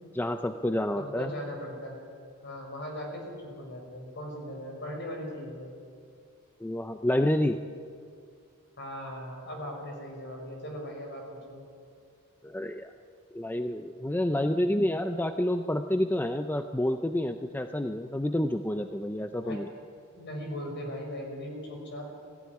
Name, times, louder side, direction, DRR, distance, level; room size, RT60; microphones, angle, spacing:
voice 1, 0.1-1.3 6.6-7.6 12.4-12.9 13.3-19.7, left 1 dB, 10° left, 8 dB, 0.5 m, -29 dB
voice 2, 1.0-2.0 2.4-5.7 8.8-11.6 19.4-19.6 20.1-22.1, equal, 50° left, 1 dB, 5.8 m, -39 dB
18.5 x 15.0 x 9.8 m, 2.3 s
head